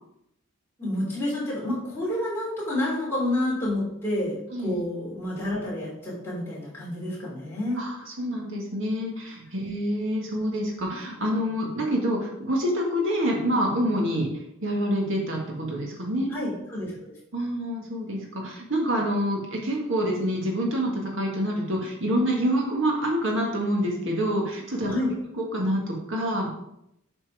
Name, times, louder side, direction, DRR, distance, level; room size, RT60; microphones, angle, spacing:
voice 1, 0.8-7.8 16.3-17.1 24.9-25.1, left 1 dB, 10° left, -7 dB, 3.2 m, -29 dB
voice 2, 7.8-14.3 14.6-16.3 17.3-24.9 25.4-26.5, equal, 60° right, -1 dB, 1.8 m, -27 dB
7.8 x 4.4 x 4.8 m, 0.79 s
head